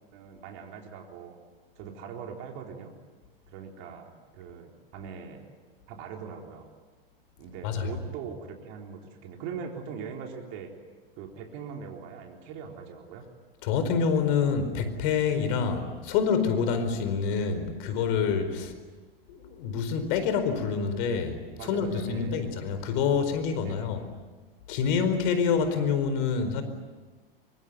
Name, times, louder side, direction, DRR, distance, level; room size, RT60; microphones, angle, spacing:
voice 1, 0.1-1.4 1.8-2.9 3.5-5.4 5.9-6.7 7.4-10.7 11.2-13.2 18.6-18.7 21.6-22.6 23.6-24.1, right 6 dB, 50° right, 2 dB, 4.1 m, -41 dB
voice 2, 7.6-8.0 13.6-18.7 19.3-24.0 24.7-26.6, left 6 dB, 55° left, 10 dB, 4.6 m, -27 dB
24.0 x 24.0 x 9.6 m, 1.3 s
hypercardioid pair, 100°, 29 cm